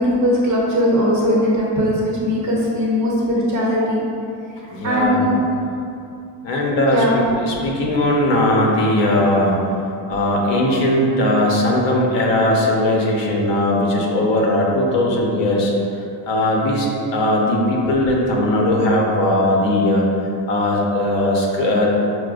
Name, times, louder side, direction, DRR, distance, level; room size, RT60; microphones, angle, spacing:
voice 1, 0.0-4.0 4.8-5.4 6.9-7.2, equal, 40° right, -5 dB, 0.8 m, -19 dB
voice 2, 4.7-5.2 6.4-9.6 10.1-15.7 16.3-20.0 20.5-22.0, left 1 dB, 75° left, -2 dB, 0.8 m, -18 dB
5.8 x 2.1 x 2.4 m, 2.6 s
cardioid pair, 135°, 45 cm